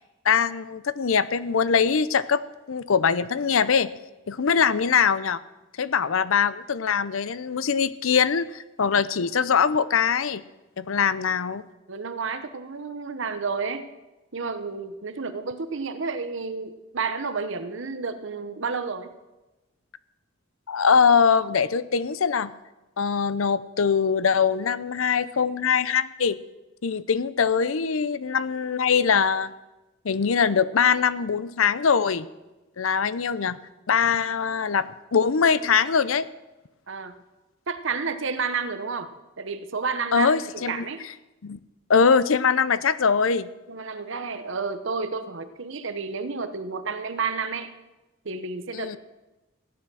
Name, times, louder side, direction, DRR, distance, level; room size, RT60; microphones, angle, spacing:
voice 1, 0.2-2.4 2.7-3.9 4.3-5.4 5.8-10.4 10.8-11.6 20.7-22.5 23.0-26.4 26.8-29.5 30.0-32.3 32.8-33.6 33.9-34.9 35.1-36.3 40.1-40.8 41.4-41.6 41.9-43.5 48.7-49.0, left 6 dB, 80° left, 16 dB, 0.6 m, -22 dB
voice 2, 11.0-11.3 11.9-13.9 14.3-19.1 36.9-37.1 37.7-39.1 39.4-41.0 43.7-47.7 48.2-49.0, right 5 dB, 65° right, 10 dB, 1.0 m, -31 dB
15.0 x 10.0 x 6.3 m, 1.1 s
head